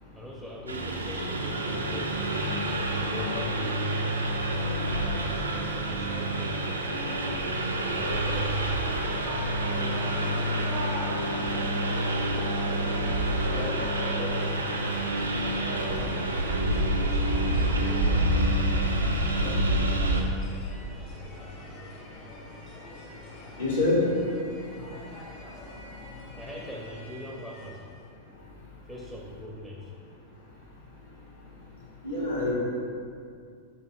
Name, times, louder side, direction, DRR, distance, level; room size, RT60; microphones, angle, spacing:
voice 1, 0.1-2.2 3.0-3.8 4.3-4.9 5.2-6.6 7.7-8.6 9.6-10.3 12.7-14.7 15.5-18.4 19.3-19.9 26.3-27.9 28.8-29.9, left 1 dB, 5° left, -3 dB, 0.5 m, -42 dB
Engine, 0.7-20.2, right 1 dB, 80° right, 0.3 m, -27 dB
sound 1, 8.2-28.0, left 1 dB, 45° left, 0.9 m, -44 dB
voice 2, 23.6-24.0 32.0-32.5, left 2 dB, 70° left, -5 dB, 1.1 m, -25 dB
7.2 x 2.4 x 2.3 m, 2.3 s
figure-of-eight pair, 90°, 0 cm